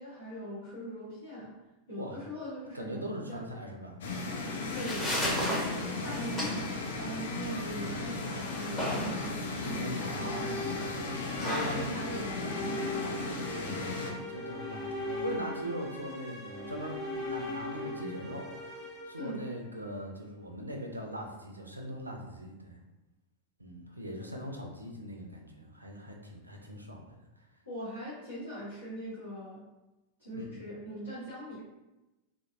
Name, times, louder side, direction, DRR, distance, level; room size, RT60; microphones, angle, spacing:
voice 1, 0.0-1.5 1.9-3.0 3.3-3.4 4.7-10.5 11.4-13.3 19.1-19.5 27.6-29.6 30.2-31.6, equal, 85° left, -14 dB, 1.0 m, -41 dB
voice 2, 2.7-4.0 9.6-11.8 13.5-22.8 23.6-27.5 30.3-30.6, equal, 85° right, 1 dB, 0.4 m, -41 dB
sound 1, 4.0-14.1, left 3 dB, 60° left, 0.4 m, -36 dB
sound 2, 4.4-13.4, equal, 15° left, 0.8 m, -37 dB
sound 3, 9.7-19.9, left 2 dB, 40° left, 1.1 m, -39 dB
2.8 x 2.1 x 2.3 m, 1.0 s
figure-of-eight pair, 90°, 0 cm